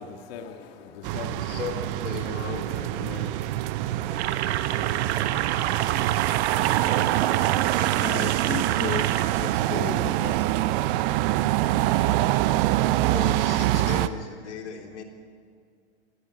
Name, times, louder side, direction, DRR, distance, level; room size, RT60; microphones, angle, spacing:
voice 1, 0.0-1.7 2.2-5.0, left 6 dB, 55° left, 2.1 m, -42 dB
sound 1, 1.0-14.1, right 15 dB, 50° right, 0.8 m, -25 dB
voice 2, 1.4-2.7 13.1-15.0, left 6 dB, 80° left, 3.4 m, -36 dB
sound 2, 4.2-9.2, right 11 dB, 70° right, 1.5 m, -30 dB
voice 3, 8.0-10.5, left 9 dB, 30° left, 1.2 m, -35 dB
28.5 x 18.0 x 6.2 m
hypercardioid pair, 105°, 34 cm